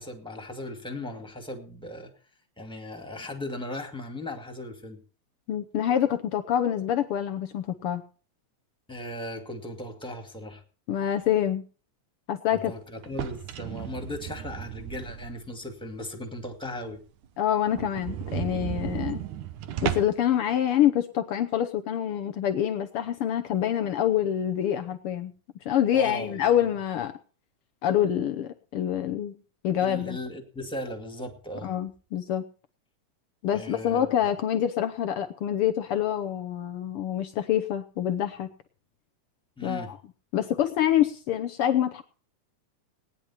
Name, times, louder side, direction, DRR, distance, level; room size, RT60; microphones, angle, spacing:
voice 1, 0.0-2.1 2.6-5.0 8.9-10.6 12.5-17.0 25.9-26.7 29.8-31.7 33.5-34.1 39.6-39.9, left 1 dB, ahead, 4 dB, 1.6 m, -37 dB
voice 2, 5.5-8.0 10.9-11.6 12.3-12.7 17.4-19.2 19.8-25.3 25.6-27.1 27.8-29.4 29.6-30.2 31.6-32.4 33.4-38.5 39.6-39.9 40.3-42.0, left 10 dB, 85° left, 8 dB, 1.2 m, -26 dB
sound 1, 13.0-15.6 16.0-16.1 16.5-16.6 16.9-17.0 17.2-17.3 17.7-20.3, right 10 dB, 75° right, 2.5 m, -34 dB
19.0 x 10.0 x 4.4 m, 0.38 s
omnidirectional pair, 3.6 m